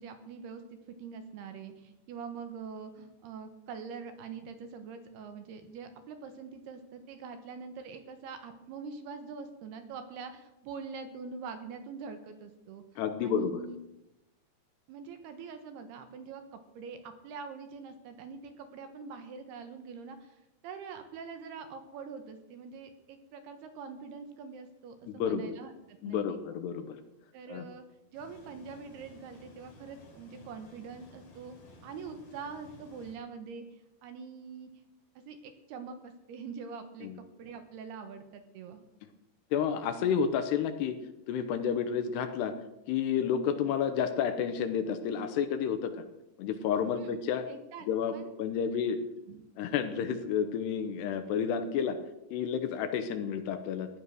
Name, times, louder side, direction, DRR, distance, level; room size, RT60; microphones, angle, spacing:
voice 1, 0.0-13.8 14.9-26.4 27.3-27.8 28.1-31.6 31.8-34.7 35.3-38.9 47.0-47.2 47.5-48.3 49.3-49.5, right 5 dB, 70° right, 8 dB, 2.9 m, -44 dB
voice 2, 13.0-13.6 25.1-25.5 26.0-27.0 27.5-27.7 37.0-37.2 39.5-41.0 41.3-42.5 42.9-46.0 46.4-47.5 47.9-49.0 49.6-52.0 52.3-53.9, left 7 dB, 75° left, 8 dB, 2.8 m, -30 dB
sound 1, 28.1-33.1, left 2 dB, 50° left, 5.4 m, -55 dB
15.5 x 10.5 x 6.4 m, 0.90 s
omnidirectional pair, 5.2 m